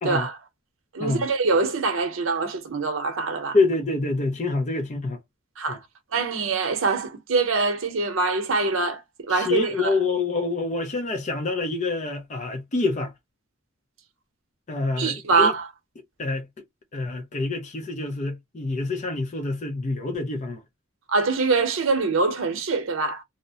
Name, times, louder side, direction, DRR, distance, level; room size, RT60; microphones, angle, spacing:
voice 1, 0.0-0.4 0.9-3.6 5.6-5.8 6.1-9.9 15.0-15.7 21.1-23.2, right 4 dB, 80° right, 0.7 m, -24 dB
voice 2, 3.5-5.2 5.7-5.8 9.3-13.1 14.7-15.5 16.2-16.5 16.9-20.6, left 3 dB, 35° left, 0.5 m, -26 dB
2.7 x 2.0 x 2.6 m
head